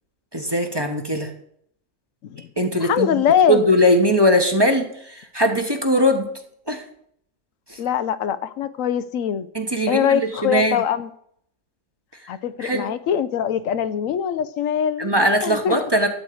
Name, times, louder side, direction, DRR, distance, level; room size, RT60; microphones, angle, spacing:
voice 1, 0.3-1.3 2.6-3.1 3.5-6.3 6.7-6.8 7.7-7.8 9.5-10.8 12.6-12.8 15.0-16.1, equal, 20° right, 4 dB, 1.2 m, -20 dB
voice 2, 2.8-3.6 7.8-9.5 9.9-11.1 12.3-15.1 15.4-15.8, left 9 dB, 80° left, 13 dB, 1.0 m, -22 dB
12.5 x 4.6 x 8.5 m, 0.69 s
omnidirectional pair, 1.4 m